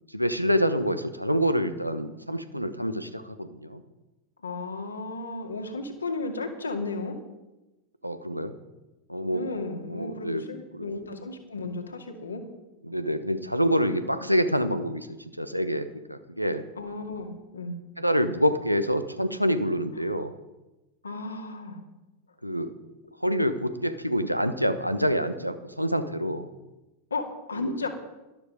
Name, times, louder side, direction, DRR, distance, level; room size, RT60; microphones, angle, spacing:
voice 1, 0.1-3.8 8.0-8.5 9.1-9.5 9.9-10.4 10.7-10.9 12.8-15.1 15.4-16.6 18.0-20.3 22.4-22.7 23.2-26.5 27.5-27.7, equal, 90° right, 10 dB, 1.0 m, -26 dB
voice 2, 4.4-7.2 9.3-12.4 14.2-14.3 16.8-17.8 20.0-20.1 21.0-21.8 27.1-27.9, left 3 dB, 75° left, 4 dB, 2.1 m, -34 dB
12.5 x 12.0 x 5.3 m, 1.1 s
figure-of-eight pair, 90°, 0 cm